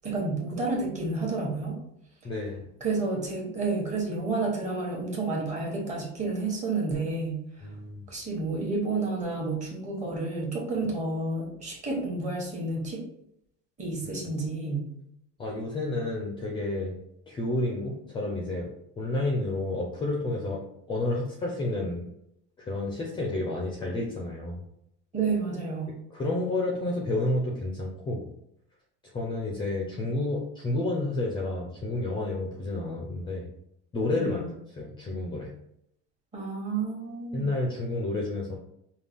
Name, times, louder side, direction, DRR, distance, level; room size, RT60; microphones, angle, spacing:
voice 1, 0.0-1.8 2.8-7.4 8.1-13.0 13.8-14.9 25.1-25.9 34.1-34.5 36.3-37.4, right 3 dB, 25° right, -3 dB, 1.2 m, -30 dB
voice 2, 2.2-2.6 7.6-8.1 15.4-16.9 17.3-18.7 19.0-20.6 20.9-22.1 22.6-24.6 25.9-28.3 29.1-33.5 33.9-34.4 34.8-35.5 37.3-38.5, left 2 dB, 15° left, -1 dB, 0.5 m, -30 dB
5.2 x 2.3 x 3.4 m, 0.77 s
cardioid pair, 160°, 31 cm